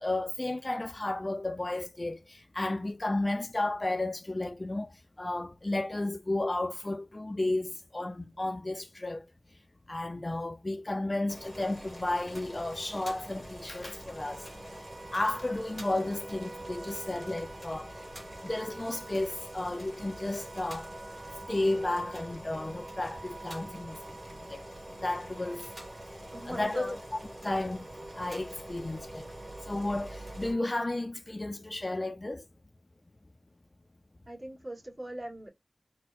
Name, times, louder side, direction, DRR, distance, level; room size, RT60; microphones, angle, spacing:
voice 1, 0.0-9.3 9.9-14.5 15.1-17.9 18.4-20.9 21.5-24.0 24.5-24.6 25.0-25.7 26.5-27.0 27.4-27.9 28.2-29.3 29.7-32.4, left 2 dB, 30° left, 0.4 m, -33 dB
Boiling, 11.3-30.5, equal, 25° right, 1.6 m, -46 dB
sound 1, 14.2-30.6, right 3 dB, 75° right, 0.4 m, -49 dB
voice 2, 26.3-27.0 34.3-35.5, right 1 dB, 40° right, 1.8 m, -41 dB
4.3 x 2.1 x 2.4 m
wide cardioid pair, 75°, 0 cm